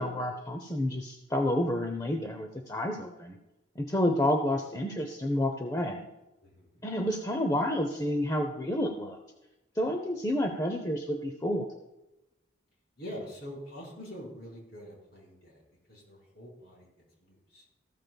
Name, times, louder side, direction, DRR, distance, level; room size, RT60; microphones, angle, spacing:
voice 1, 0.0-3.4 3.8-6.0 6.8-9.2 9.8-11.7, left 1 dB, 20° left, 5 dB, 0.7 m, -29 dB
voice 2, 6.4-6.8 13.0-15.6 15.9-16.9 17.2-17.6, equal, 50° left, -2 dB, 4.5 m, -45 dB
14.5 x 13.0 x 2.3 m, 0.95 s
head